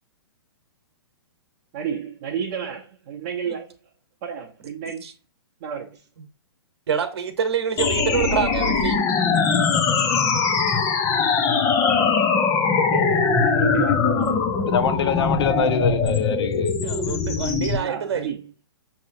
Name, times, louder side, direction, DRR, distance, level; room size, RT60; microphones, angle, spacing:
voice 1, 1.7-3.7 4.2-5.1 5.6-6.0 12.7-14.5 15.4-15.8 17.7-18.5, right 8 dB, 40° right, 0.9 m, -31 dB
voice 2, 6.9-9.0 16.8-18.3, right 7 dB, 65° right, 1.2 m, -26 dB
sound 1, 7.8-17.8, left 5 dB, 20° left, 0.7 m, -21 dB
voice 3, 14.7-16.7, left 6 dB, 65° left, 0.8 m, -24 dB
6.4 x 2.9 x 2.7 m
hypercardioid pair, 135°, 14 cm